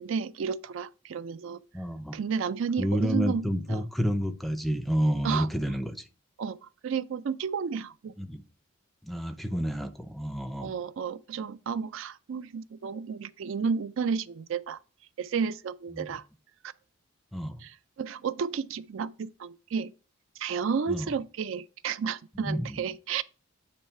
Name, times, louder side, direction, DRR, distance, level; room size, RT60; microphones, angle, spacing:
voice 1, 0.0-1.6 2.1-3.8 5.2-5.5 6.4-6.6 6.8-8.1 10.6-14.8 15.2-16.2 17.6-19.9 20.4-23.2, right 6 dB, 65° right, 0.4 m, -32 dB
voice 2, 1.7-2.2 2.8-6.0 8.2-8.4 9.0-10.7 15.9-16.1 17.3-17.6 20.9-21.1 22.4-22.8, equal, ahead, 0.5 m, -29 dB
8.5 x 3.1 x 5.5 m
head